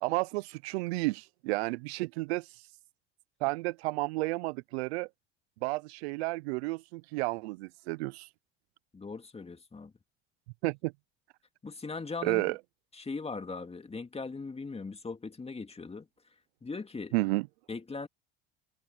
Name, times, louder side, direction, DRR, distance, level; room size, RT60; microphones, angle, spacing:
voice 1, 0.0-2.7 3.4-5.1 5.6-8.3 10.6-10.9 12.2-12.6 17.1-17.5, right 22 dB, 80° right, 0.6 m, -32 dB
voice 2, 8.9-9.9 11.6-12.4 12.9-16.1 16.6-17.1 17.7-18.1, left 4 dB, 20° left, 2.4 m, -39 dB
supercardioid pair, 85°, 31 cm